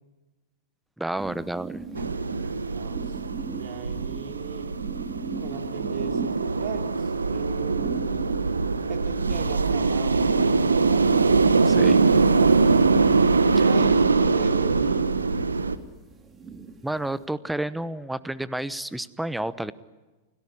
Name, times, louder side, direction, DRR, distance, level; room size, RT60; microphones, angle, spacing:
voice 1, 1.0-1.8 11.6-12.0 13.5-13.7 16.8-19.7, right 1 dB, 5° right, 17 dB, 1.0 m, -30 dB
sound 1, 1.2-17.3, right 5 dB, 20° right, 2.4 m, -41 dB
sound 2, 1.9-15.8, right 4 dB, 80° right, 1.3 m, -22 dB
voice 2, 2.5-3.2 3.5-4.7 5.4-8.1 8.9-11.1 13.6-15.2, right 7 dB, 45° right, 5 dB, 3.3 m, -38 dB
29.0 x 17.5 x 9.9 m, 1.2 s
figure-of-eight pair, 95°, 0 cm